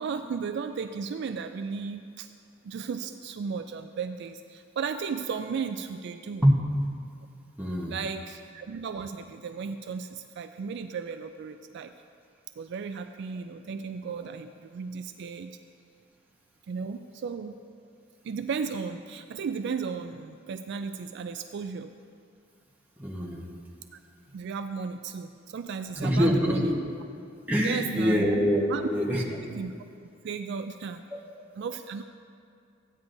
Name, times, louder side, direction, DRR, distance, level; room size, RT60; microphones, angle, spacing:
voice 1, 0.0-2.3 2.6-6.4 7.9-11.9 12.6-15.6 16.7-17.6 18.2-21.9 23.9-24.0 24.3-26.7 27.6-28.3 28.7-28.9 29.5-29.7 30.2-31.0 31.6-32.0, right 5 dB, 55° right, 8 dB, 0.3 m, -35 dB
voice 2, 7.6-7.9 23.0-23.5 25.9-26.7 27.5-29.4, equal, 10° right, -3 dB, 1.2 m, -24 dB
14.5 x 9.4 x 2.6 m, 2.5 s
head